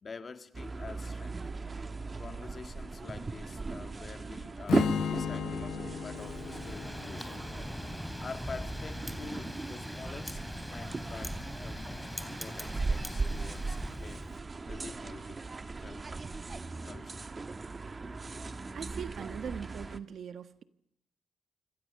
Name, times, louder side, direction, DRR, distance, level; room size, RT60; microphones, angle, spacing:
voice 1, 0.0-1.5 2.2-7.4 8.2-10.4 10.7-14.3 14.7-15.4 15.8-17.2, left 4 dB, 40° left, 1.8 m, -47 dB
sound 1, 0.5-20.0, right 3 dB, 30° right, 1.5 m, -38 dB
Strum, 4.7-8.8, left 8 dB, 80° left, 0.9 m, -36 dB
Wind, 6.2-14.3, equal, ahead, 3.5 m, -41 dB
voice 2, 18.7-20.6, right 7 dB, 70° right, 1.4 m, -41 dB
28.5 x 26.0 x 6.7 m
cardioid pair, 95°, 0 cm